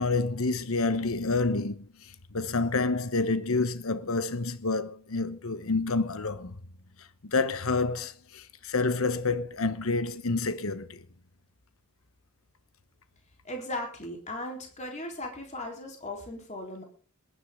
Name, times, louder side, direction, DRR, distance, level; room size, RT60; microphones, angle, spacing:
voice 1, 0.0-1.8 2.3-6.6 7.2-11.0, left 3 dB, 70° left, 1.1 m, -28 dB
voice 2, 13.4-16.8, left 1 dB, 30° left, 3.8 m, -37 dB
20.5 x 11.0 x 3.7 m
head